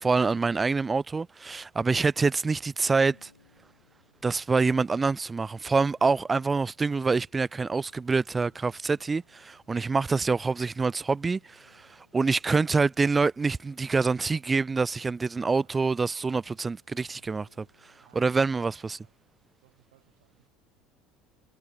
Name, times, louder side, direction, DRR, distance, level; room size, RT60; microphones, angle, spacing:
voice 1, 0.0-3.3 4.2-11.9 12.1-17.7 18.2-19.0, right 4 dB, 20° right, 0.3 m, -26 dB
sound 1, 1.9-18.6, left 5 dB, 90° left, 2.4 m, -67 dB
voice 2, 15.5-16.0 18.0-19.1 19.6-20.5, right 18 dB, 70° right, 4.2 m, -63 dB
figure-of-eight pair, 65°, 0 cm